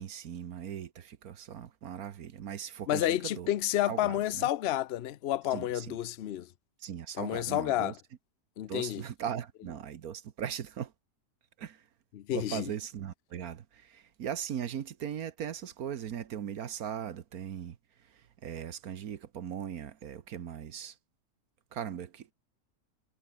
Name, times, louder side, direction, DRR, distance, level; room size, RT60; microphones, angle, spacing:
voice 1, 0.0-3.5 3.9-4.5 5.5-5.9 6.8-7.9 8.7-10.9 11.6-11.8 12.3-17.8 18.4-20.9 21.7-22.3, right 9 dB, 65° right, 1.4 m, -39 dB
voice 2, 2.9-6.5 7.1-8.0 8.6-9.0 12.1-12.7, left 13 dB, 60° left, 0.7 m, -30 dB
omnidirectional pair, 1.8 m